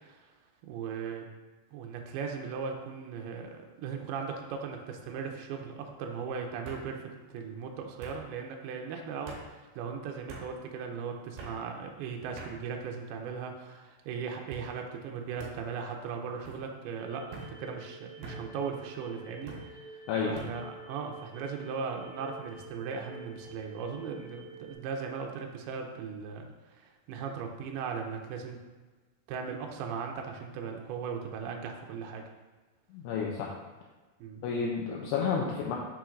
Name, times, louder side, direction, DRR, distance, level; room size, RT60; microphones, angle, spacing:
voice 1, 0.7-1.3 1.7-26.5 26.8-28.6 29.3-32.2 34.2-34.4, right 6 dB, 85° right, 2 dB, 2.3 m, -38 dB
sound 1, 3.2-3.6 4.0-4.5 5.6-5.7 6.7-6.9 8.0-8.2 9.3-9.5 10.3-10.5 11.4-11.6 12.4-12.6 13.3-13.7 14.5-14.7 15.4-15.6 16.4-16.6 17.3-17.5 18.2-18.4 19.5-19.7 20.4-20.6, right 3 dB, 70° right, 2.3 m, -45 dB
sound 2, 17.0-24.7, right 2 dB, 50° right, 2.0 m, -49 dB
voice 2, 20.1-20.4 32.9-33.5 34.4-35.8, left 6 dB, 80° left, -3 dB, 2.6 m, -31 dB
6.9 x 5.9 x 2.5 m, 1.3 s
omnidirectional pair, 5.1 m